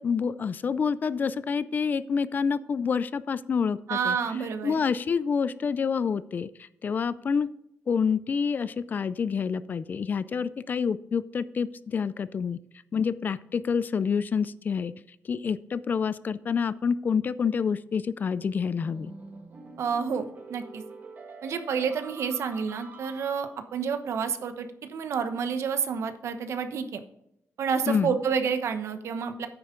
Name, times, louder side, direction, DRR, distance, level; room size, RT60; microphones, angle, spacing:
voice 1, 0.0-4.2 4.6-7.5 7.9-12.6 12.9-14.9 15.3-19.1 27.9-28.2, left 6 dB, 40° left, 16 dB, 0.4 m, -27 dB
voice 2, 3.9-4.8 19.8-20.8 21.4-27.0 27.6-29.5, right 6 dB, 75° right, 8 dB, 1.0 m, -29 dB
sound 1, 18.8-23.7, right 3 dB, 40° right, 1.7 m, -46 dB
9.5 x 8.9 x 3.8 m, 0.79 s
wide cardioid pair, 175°, 5 cm